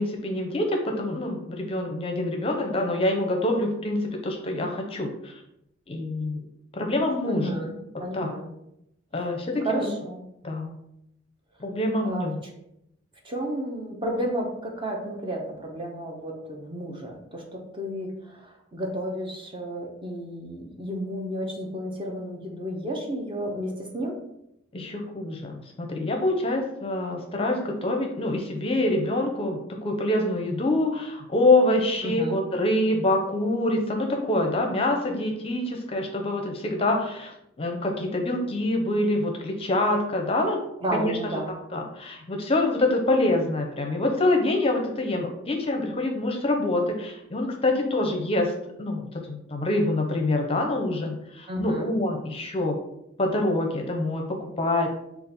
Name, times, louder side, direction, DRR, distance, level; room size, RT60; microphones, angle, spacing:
voice 1, 0.0-5.3 5.9-6.4 6.7-7.5 8.1-8.3 9.1-9.6 10.4-10.7 11.6-12.4 24.7-37.3 37.6-40.6 40.9-41.2 41.7-48.5 48.8-52.8 53.2-54.9, left 2 dB, 30° left, 3 dB, 0.6 m, -25 dB
voice 2, 7.3-7.7 8.0-8.5 9.6-10.2 12.0-12.5 13.2-24.2 32.0-32.4 40.8-41.5 51.5-51.9, right 1 dB, 25° right, 0 dB, 0.8 m, -32 dB
5.0 x 2.4 x 3.9 m, 0.79 s
head